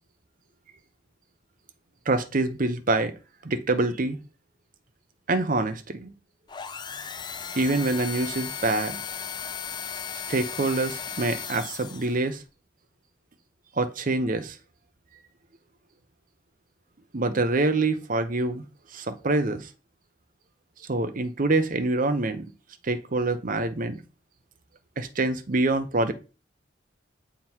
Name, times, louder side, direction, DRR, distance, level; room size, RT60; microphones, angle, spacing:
voice 1, 2.1-3.1 3.4-4.2 5.3-6.1 7.5-9.0 10.3-12.4 13.8-14.6 17.1-18.6 18.9-19.7 20.9-22.5 22.8-24.0 25.0-26.1, right 2 dB, 45° right, 0.7 m, -25 dB
sound 1, 6.5-12.3, left 7 dB, 25° left, 0.4 m, -36 dB
7.8 x 3.8 x 4.4 m
head